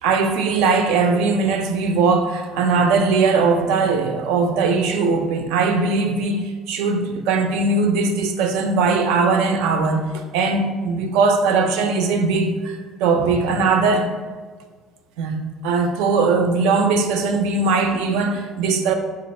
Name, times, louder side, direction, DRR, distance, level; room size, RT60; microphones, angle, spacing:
voice 1, 0.0-14.1 15.2-15.4 15.6-18.9, right 4 dB, 85° right, 0.5 m, -20 dB
5.0 x 2.4 x 4.3 m
cardioid pair, 150°, 0 cm